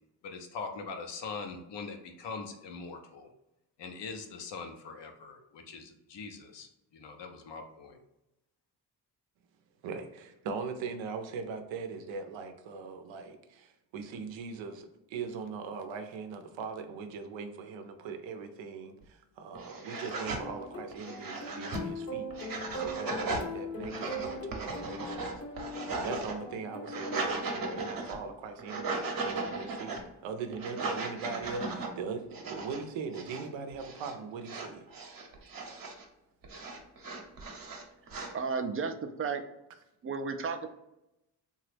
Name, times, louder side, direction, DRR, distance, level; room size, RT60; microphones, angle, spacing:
voice 1, 0.2-3.3 3.8-8.0, left 4 dB, 70° left, 4 dB, 0.7 m, -42 dB
voice 2, 9.8-22.3 22.7-25.3 25.9-30.0 30.2-34.8, right 5 dB, 90° right, 7 dB, 0.6 m, -40 dB
sound 1, 19.0-19.1 19.5-20.4 20.9-21.9 22.3-23.5 23.8-26.3 26.7-28.2 28.6-30.0 30.5-31.9 32.3-32.8 33.1-33.5 33.7-34.1 34.4-36.0 36.4-38.3, right 3 dB, 50° right, 0.8 m, -37 dB
sound 2, 20.3-27.7, left 1 dB, 35° left, 0.7 m, -41 dB
voice 3, 38.3-39.4 40.0-40.7, right 5 dB, 30° right, 8 dB, 0.4 m, -33 dB
2.9 x 2.3 x 3.2 m, 0.90 s
cardioid pair, 65°, 44 cm